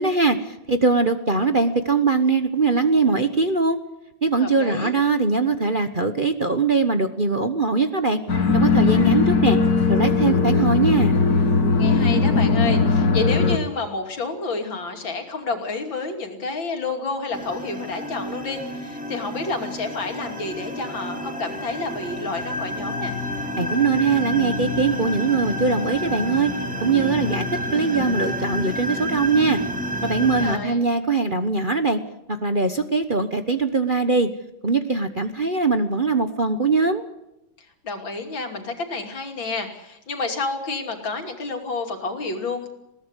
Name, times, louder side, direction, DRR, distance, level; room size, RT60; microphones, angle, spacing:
voice 1, 0.0-3.8 4.2-8.2 8.5-9.6 9.9-11.2 23.6-26.5 26.8-29.6 30.0-32.0 32.3-34.3 34.6-37.1, right 4 dB, 35° right, 8 dB, 1.0 m, -21 dB
voice 2, 4.4-4.9 11.8-23.1 30.2-30.8 37.8-42.7, left 3 dB, 75° left, 4 dB, 3.6 m, -30 dB
sound 1, 8.3-13.6, left 4 dB, 55° left, 2.3 m, -19 dB
sound 2, 17.3-30.6, equal, 5° right, 2.6 m, -29 dB
21.0 x 17.5 x 8.2 m, 0.88 s
omnidirectional pair, 2.1 m